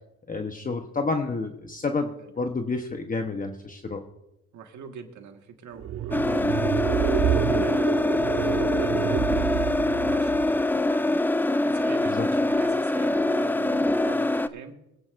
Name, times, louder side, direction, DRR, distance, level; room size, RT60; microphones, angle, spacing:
voice 1, 0.3-4.0 12.0-12.3, left 3 dB, 30° left, 5 dB, 0.9 m, -29 dB
voice 2, 0.8-1.1 2.2-2.3 4.5-7.9 8.3-11.2 11.6-14.8, right 6 dB, 70° right, 4 dB, 1.6 m, -44 dB
sound 1, 5.8-10.6, right 11 dB, 50° right, 0.5 m, -28 dB
sound 2, 6.1-14.5, left 2 dB, 5° left, 0.4 m, -24 dB
21.5 x 9.7 x 2.5 m, 0.88 s
cardioid pair, 90°, 30 cm